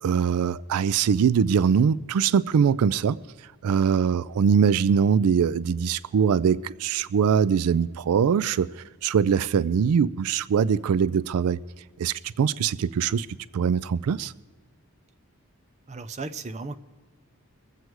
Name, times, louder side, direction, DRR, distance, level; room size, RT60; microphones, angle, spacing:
voice 1, 0.0-3.2 3.6-11.6 12.0-13.3 13.5-14.3, right 7 dB, 85° right, 0.3 m, -22 dB
voice 2, 15.9-16.8, right 3 dB, 30° right, 0.5 m, -35 dB
22.0 x 8.0 x 4.7 m
head